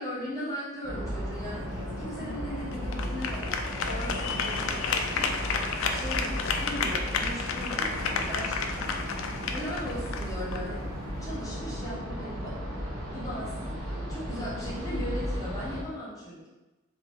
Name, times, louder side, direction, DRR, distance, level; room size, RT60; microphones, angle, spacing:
voice 1, 0.0-5.3 5.9-9.0 9.5-10.8 11.2-16.5, equal, 15° left, -7 dB, 0.8 m, -38 dB
sound 1, 0.8-15.8, equal, 70° right, 0.8 m, -35 dB
sound 2, 1.3-11.4, left 5 dB, 70° left, 0.3 m, -32 dB
3.4 x 2.6 x 3.1 m, 1.1 s
head